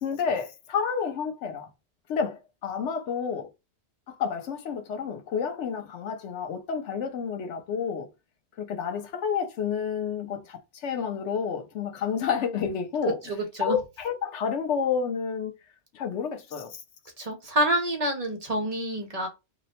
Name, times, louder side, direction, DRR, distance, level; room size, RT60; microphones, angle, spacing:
voice 1, 0.0-1.7 2.1-3.5 4.1-8.1 8.6-13.2 13.6-15.5 15.9-16.8, left 6 dB, 90° left, 1.0 m, -30 dB
voice 2, 13.2-13.8 17.2-19.3, right 1 dB, 40° right, 0.7 m, -27 dB
2.8 x 2.0 x 4.1 m
omnidirectional pair, 1.2 m